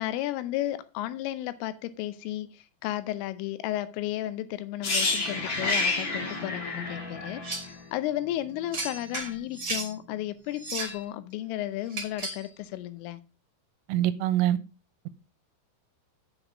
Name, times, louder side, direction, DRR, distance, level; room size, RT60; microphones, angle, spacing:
voice 1, 0.0-13.2, left 14 dB, 80° left, 3.2 m, -33 dB
sound 1, 4.8-8.7 8.9-9.1, left 3 dB, 60° left, 1.2 m, -30 dB
sound 2, 7.4-7.8 8.7-9.9 10.5-11.0 11.9-12.5, right 2 dB, 20° right, 2.5 m, -34 dB
voice 2, 13.9-14.6, right 12 dB, 85° right, 3.2 m, -24 dB
8.0 x 6.3 x 6.2 m
omnidirectional pair, 5.9 m